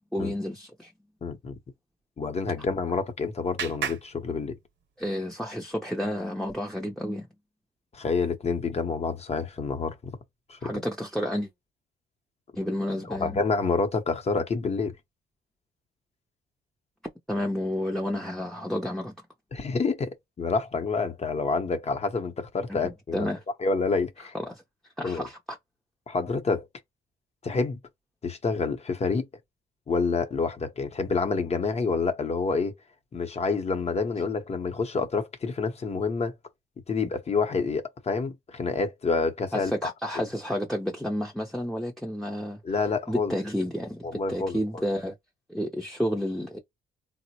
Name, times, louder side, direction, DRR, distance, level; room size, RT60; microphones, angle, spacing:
voice 1, 0.1-0.9 5.0-7.3 10.6-11.5 12.5-13.4 17.3-19.1 22.8-23.4 24.5-24.6 25.0-25.6 39.5-42.6 43.1-45.1 45.5-46.6, equal, ahead, 0.6 m, -30 dB
voice 2, 1.2-1.6 2.2-4.6 7.9-10.1 10.5-10.7 13.1-14.9 19.5-23.3 23.6-24.3 25.0-25.3 26.1-26.7 27.4-27.8 28.2-29.2 29.9-32.7 33.1-36.3 36.9-39.7 42.6-43.3 44.0-44.8, left 4 dB, 35° left, 0.8 m, -28 dB
Clapping, 2.5-5.1, right 8 dB, 65° right, 0.8 m, -38 dB
3.7 x 2.1 x 2.8 m
cardioid pair, 90°, 20 cm